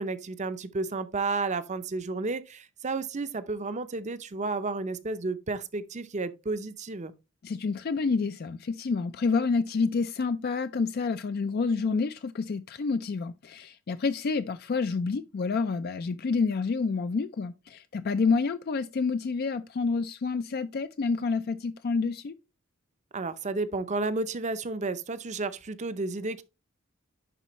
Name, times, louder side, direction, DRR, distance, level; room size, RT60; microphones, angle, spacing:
voice 1, 0.0-7.1 23.1-26.4, right 3 dB, 35° right, 0.6 m, -32 dB
voice 2, 7.4-22.4, left 4 dB, 45° left, 0.4 m, -28 dB
11.0 x 4.2 x 3.0 m
head